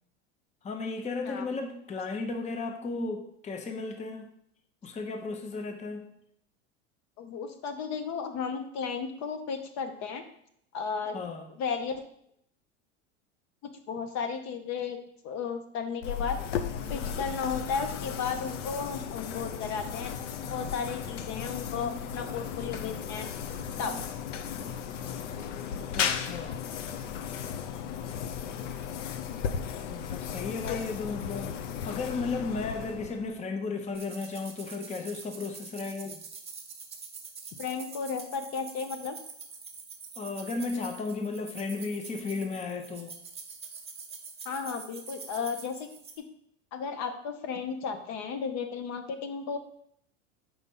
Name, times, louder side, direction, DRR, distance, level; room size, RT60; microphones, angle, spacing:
voice 1, 0.6-4.3 4.8-6.1 11.1-11.5 16.6-17.4 19.8-20.8 21.7-23.0 23.4-24.0 24.5-26.6 29.9-31.5 31.8-36.2 40.2-43.1, left 3 dB, 20° left, 5 dB, 0.7 m, -36 dB
voice 2, 7.2-10.2 10.7-11.1 11.6-12.0 13.9-16.4 16.9-20.1 20.5-23.3 23.8-23.9 30.7-30.8 37.6-39.2 44.4-45.9 46.7-49.6, left 6 dB, 50° left, 7 dB, 0.9 m, -34 dB
sound 1, 16.0-33.4, left 8 dB, 85° left, 0.6 m, -35 dB
sound 2, 33.9-46.2, right 5 dB, 15° right, 1.0 m, -45 dB
4.7 x 4.1 x 5.4 m, 0.71 s
hypercardioid pair, 95°, 36 cm